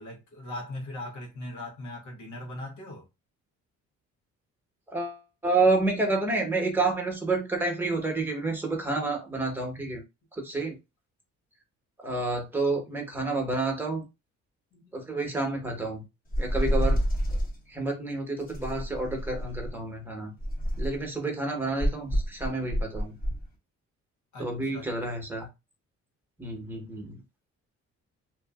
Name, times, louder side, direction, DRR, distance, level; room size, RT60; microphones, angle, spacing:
voice 1, 0.0-3.1 10.4-10.6 14.7-15.4 24.3-25.1, left 1 dB, 70° left, 1.2 m, -40 dB
voice 2, 4.9-10.0 10.4-10.7 12.0-14.0 14.9-16.0 16.4-17.0 17.7-20.3 20.8-23.1 24.4-25.5 26.4-27.2, right 3 dB, 5° right, 1.1 m, -29 dB
sound 1, 16.3-17.6 18.5-19.7 20.4-21.1 21.8-23.4, equal, 30° left, 1.0 m, -28 dB
2.7 x 2.5 x 2.4 m
cardioid pair, 90°, 30 cm